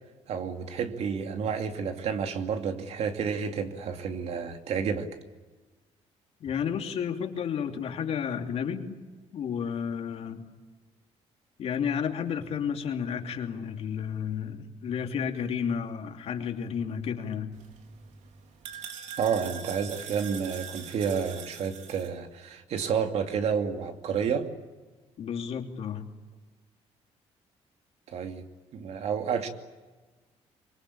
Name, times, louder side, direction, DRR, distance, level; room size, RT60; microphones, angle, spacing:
voice 1, 0.3-5.1 19.2-24.5 28.1-28.4 28.7-29.5, right 6 dB, 65° right, 6 dB, 2.6 m, -30 dB
voice 2, 6.4-8.9 9.3-10.5 11.6-17.6 25.2-26.1, left 7 dB, 60° left, 4 dB, 2.9 m, -32 dB
sound 1, 17.5-22.1, right 8 dB, 80° right, 3.4 m, -43 dB
25.0 x 23.0 x 8.6 m, 1.3 s
cardioid pair, 145°, 12 cm